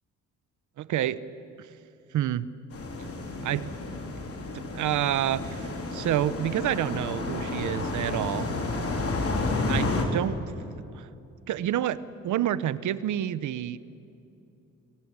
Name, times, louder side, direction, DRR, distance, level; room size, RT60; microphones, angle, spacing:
voice 1, 0.8-1.2 2.1-2.5 3.4-3.7 4.5-8.5 9.7-10.4 10.9-11.1 11.5-13.8, right 11 dB, 75° right, 16 dB, 1.1 m, -28 dB
sound 1, 2.7-10.0, left 2 dB, 50° left, 4.1 m, -31 dB
25.0 x 23.0 x 9.7 m, 2.7 s
cardioid pair, 90°, 30 cm